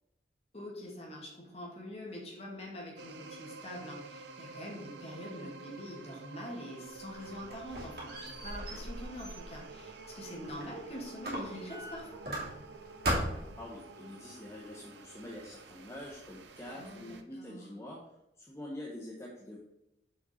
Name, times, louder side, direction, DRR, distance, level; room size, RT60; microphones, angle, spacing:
voice 1, 0.5-12.3 16.7-17.6, equal, 35° left, -2 dB, 2.0 m, -44 dB
sound 1, 3.0-17.2, right 3 dB, 85° right, 0.7 m, -50 dB
Squeak, 7.0-10.8 11.2-12.7 13.0-13.6, right 1 dB, 60° right, 2.4 m, -38 dB
voice 2, 13.6-18.0 18.4-19.6, left 1 dB, 15° left, -3 dB, 0.9 m, -45 dB
6.8 x 5.0 x 4.3 m, 0.87 s
head